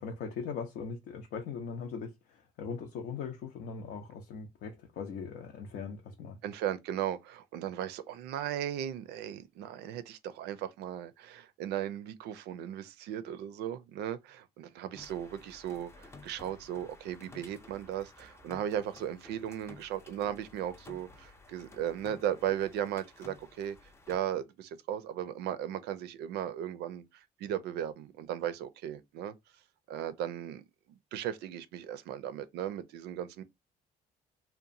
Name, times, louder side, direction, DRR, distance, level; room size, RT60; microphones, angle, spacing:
voice 1, 0.0-6.4, left 6 dB, 70° left, 0.6 m, -40 dB
voice 2, 6.4-23.8 24.1-29.3 29.9-33.4, right 10 dB, 80° right, 0.5 m, -36 dB
sound 1, 14.9-24.2, left 3 dB, 15° left, 0.4 m, -54 dB
2.9 x 2.1 x 2.5 m
cardioid pair, 110°, 17 cm